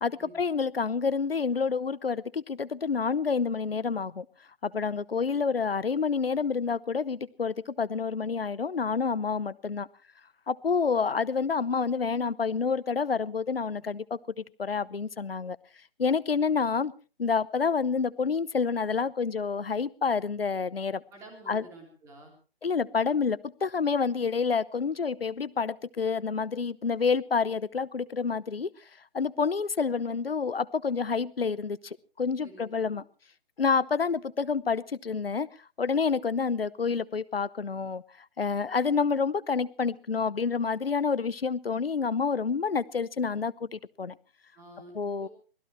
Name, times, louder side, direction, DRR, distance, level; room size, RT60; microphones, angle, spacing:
voice 1, 0.0-4.3 4.6-9.9 10.5-15.6 16.0-16.9 17.2-21.0 21.5-21.6 22.6-28.7 29.1-33.0 33.6-35.5 35.8-38.0 38.4-44.1 44.9-45.3, left 5 dB, 70° left, 18 dB, 0.9 m, -28 dB
voice 2, 21.1-22.3 32.4-33.0 44.6-44.9 45.2-45.3, right 2 dB, 10° right, 1 dB, 3.3 m, -50 dB
25.0 x 16.5 x 3.1 m, 0.37 s
figure-of-eight pair, 145°, 30 cm